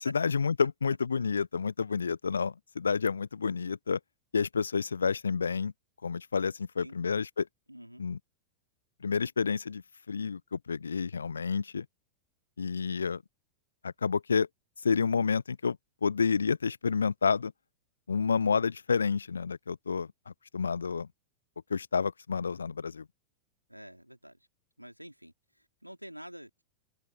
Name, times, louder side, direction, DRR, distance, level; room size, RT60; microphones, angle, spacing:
voice 1, 0.0-4.0 4.3-5.7 6.0-7.5 8.0-8.2 9.0-9.8 10.1-11.9 12.6-13.2 13.8-14.5 14.8-17.5 18.1-21.1 21.7-23.0, left 5 dB, 75° left, 0.7 m, -29 dB
voice 2, 7.7-8.0 23.7-24.4 24.8-26.6, equal, 90° right, 3.3 m, -48 dB
open air
figure-of-eight pair, 90°, 0 cm